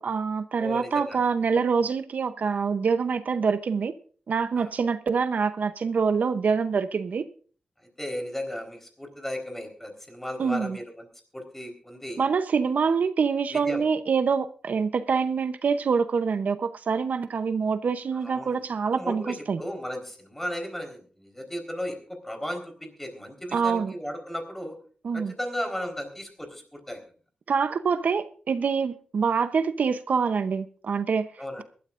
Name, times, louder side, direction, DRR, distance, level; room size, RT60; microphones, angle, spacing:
voice 1, 0.0-3.9 4.3-7.3 10.4-10.8 12.2-19.6 23.5-23.9 25.0-25.3 27.5-31.3, right 5 dB, 70° right, 0.7 m, -25 dB
voice 2, 0.6-1.2 4.6-4.7 8.0-11.1 11.3-12.2 13.5-13.8 18.1-18.6 18.9-24.8 25.1-27.0 31.4-31.6, equal, 10° left, 4.0 m, -35 dB
23.0 x 13.0 x 2.5 m
wide cardioid pair, 105°, 3 cm